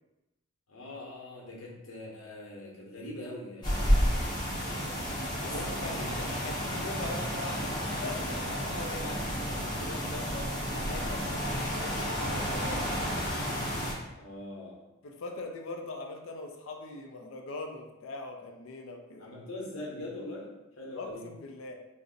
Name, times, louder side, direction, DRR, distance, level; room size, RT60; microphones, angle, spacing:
voice 1, 0.7-5.0 5.4-6.3 14.1-14.8 19.2-21.2, left 1 dB, 90° left, -3 dB, 0.9 m, -43 dB
sound 1, 3.6-13.9, equal, 20° left, 0.7 m, -31 dB
voice 2, 5.4-10.5 10.8-12.9 15.0-19.3 20.9-21.7, left 3 dB, 70° left, 3 dB, 0.4 m, -42 dB
2.5 x 2.0 x 3.7 m, 0.97 s
head